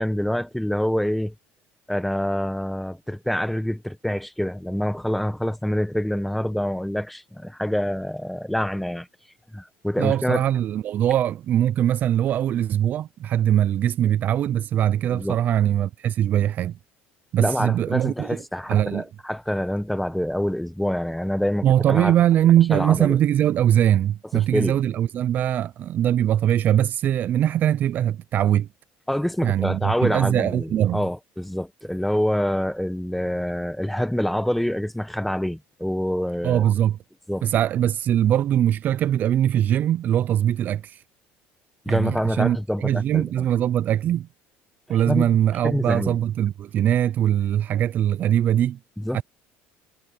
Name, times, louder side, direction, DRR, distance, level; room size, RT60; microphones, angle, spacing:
voice 1, 0.0-1.3 1.9-9.1 9.5-10.4 15.1-15.4 17.4-22.1 22.7-23.2 24.3-24.8 29.1-36.6 37.3-37.4 41.8-43.2 44.9-45.3 45.6-46.2 49.0-49.2, equal, ahead, 1.3 m, -26 dB
voice 2, 10.0-16.7 17.3-18.4 18.7-19.0 21.6-28.7 29.4-31.0 36.4-37.0 37.4-41.0 41.9-44.3 44.9-48.8 49.1-49.2, right 11 dB, 40° right, 0.3 m, -21 dB
cardioid pair, 135°, 4 cm